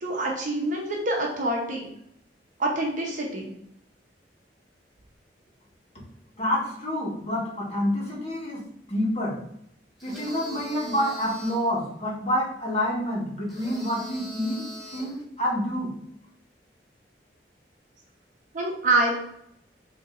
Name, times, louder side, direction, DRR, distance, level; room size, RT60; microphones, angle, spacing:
voice 1, 0.0-1.9 2.6-3.5 18.5-19.1, right 2 dB, 45° right, -1 dB, 0.9 m, -26 dB
voice 2, 6.4-9.4 10.0-14.7 14.9-15.9, equal, 35° left, -5 dB, 1.5 m, -28 dB
sound 1, 10.0-11.7 13.5-15.2, equal, ahead, 1.6 m, -42 dB
7.1 x 2.9 x 2.5 m, 0.73 s
head